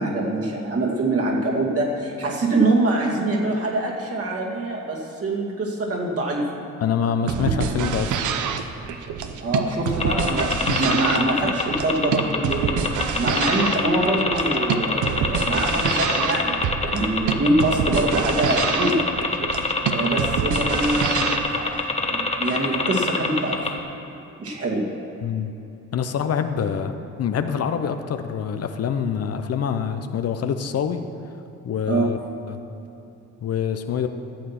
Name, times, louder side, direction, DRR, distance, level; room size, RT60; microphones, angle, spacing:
voice 1, 0.0-6.5 7.3-7.6 9.4-19.0 19.9-23.7 24.4-24.9 31.9-32.1, right 2 dB, 50° right, -1 dB, 2.3 m, -24 dB
voice 2, 6.8-8.2 10.7-11.0 25.2-25.5 25.9-26.9 27.2-31.0 31.6-32.2 32.5-32.6 33.4-34.1, left 7 dB, 55° left, 8 dB, 0.7 m, -25 dB
sound 1, 7.2-21.4, right 7 dB, 80° right, 0.8 m, -26 dB
sound 2, 10.0-23.8, left 3 dB, 20° left, 1.2 m, -24 dB
13.0 x 7.7 x 6.0 m, 3.0 s
cardioid pair, 90°, 30 cm